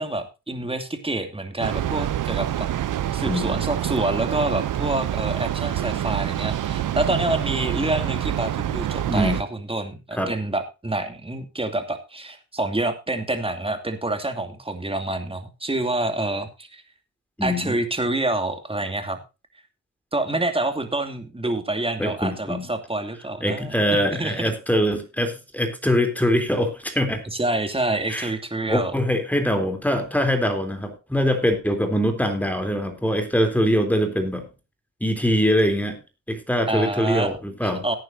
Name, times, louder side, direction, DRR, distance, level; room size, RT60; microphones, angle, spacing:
voice 1, 0.0-2.7 3.1-16.8 17.4-19.2 20.1-24.5 27.2-28.9 36.7-37.4 37.6-38.0, right 2 dB, 15° right, 6 dB, 2.7 m, -27 dB
Train, 1.6-9.4, right 12 dB, 70° right, 0.7 m, -26 dB
voice 2, 3.2-3.6 9.1-9.4 10.1-10.3 17.4-17.7 22.0-22.7 23.4-27.2 28.1-28.3 28.7-34.5 35.0-36.0 36.3-37.8, equal, 5° left, 6 dB, 3.5 m, -23 dB
18.0 x 9.5 x 2.7 m, 0.28 s
cardioid pair, 80°, 32 cm